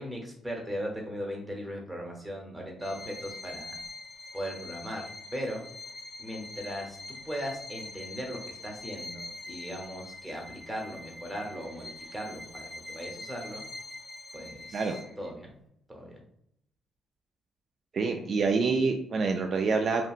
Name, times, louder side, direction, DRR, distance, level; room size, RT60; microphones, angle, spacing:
voice 1, 0.0-3.7 4.3-5.0 5.3-5.6 6.2-7.0 7.2-13.6 14.3-14.9 15.2-15.5 15.9-16.2, equal, 10° right, 0 dB, 0.9 m, -38 dB
Bowed string instrument, 2.8-15.3, left 2 dB, 25° left, 0.8 m, -44 dB
voice 2, 17.9-20.1, right 4 dB, 50° right, 4 dB, 0.3 m, -26 dB
2.9 x 2.5 x 2.4 m, 0.74 s
cardioid pair, 90°, 0 cm